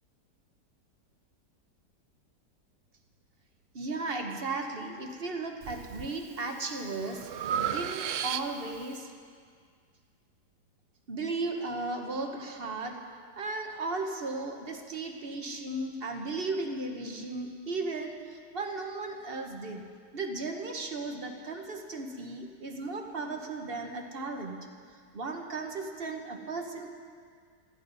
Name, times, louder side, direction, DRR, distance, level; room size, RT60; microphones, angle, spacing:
voice 1, 3.7-9.1 11.1-13.0 13.4-24.6 25.1-26.9, right 3 dB, 40° right, 4 dB, 1.1 m, -36 dB
Breathing, 5.6-6.1 6.6-8.8, right 9 dB, 70° right, 0.7 m, -34 dB
20.0 x 14.0 x 4.0 m, 2.1 s
omnidirectional pair, 1.8 m